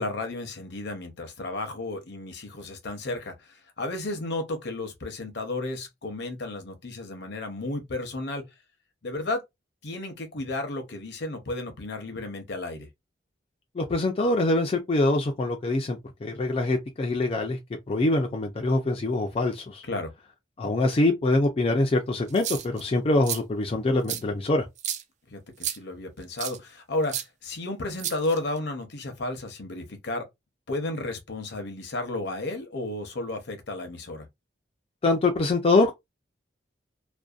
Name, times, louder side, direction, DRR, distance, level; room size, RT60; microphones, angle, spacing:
voice 1, 0.0-8.5 9.0-9.4 9.8-12.9 19.8-20.1 25.3-30.3 30.7-34.3, left 2 dB, 65° left, 0.7 m, -33 dB
voice 2, 13.8-17.6 17.9-19.8 20.6-24.6 35.0-35.9, left 2 dB, 35° left, 0.4 m, -24 dB
sound 1, 22.3-22.8 23.2-23.4 24.1-24.2 24.8-25.0 25.6-25.8 26.4-26.6 27.1-27.2 28.0-28.6, right 10 dB, 40° right, 0.3 m, -31 dB
2.5 x 2.1 x 2.3 m
head